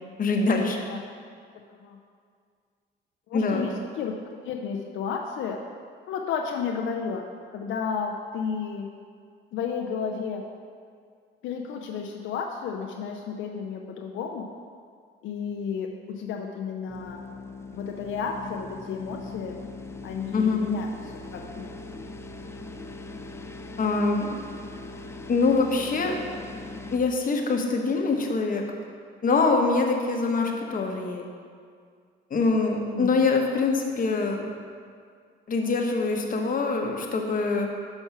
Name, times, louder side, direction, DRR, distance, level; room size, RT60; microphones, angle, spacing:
voice 1, 0.2-0.8 3.3-3.7 20.3-20.6 23.8-24.4 25.3-26.2 26.9-28.6 29.2-31.2 32.3-34.5 35.5-37.7, left 3 dB, 45° left, 2 dB, 0.9 m, -24 dB
voice 2, 3.3-3.7 4.0-4.1 4.4-5.6 6.1-7.2 7.5-8.9 9.5-10.4 11.4-14.5 15.2-17.2 17.7-19.6 20.0-20.9 21.3-21.7 32.8-33.1, left 6 dB, 80° left, 2 dB, 0.5 m, -32 dB
sound 1, 16.9-27.0, left 3 dB, 15° left, 0.4 m, -40 dB
5.6 x 4.4 x 5.8 m, 2.1 s
cardioid pair, 90°, 20 cm